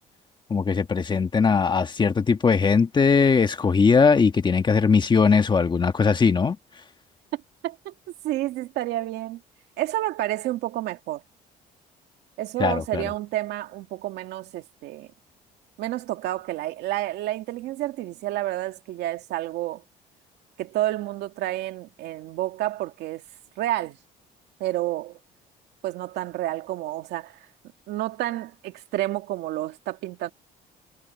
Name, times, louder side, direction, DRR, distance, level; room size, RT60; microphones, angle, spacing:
voice 1, 0.5-6.6 12.6-13.1, left 5 dB, 25° left, 1.4 m, -20 dB
voice 2, 7.3-7.9 8.2-9.4 9.8-11.2 12.4-15.1 15.8-19.8 20.6-23.2 23.6-24.0 24.6-25.2 25.8-27.5 27.9-30.3, right 15 dB, 85° right, 2.3 m, -30 dB
cardioid pair, 110°, 17 cm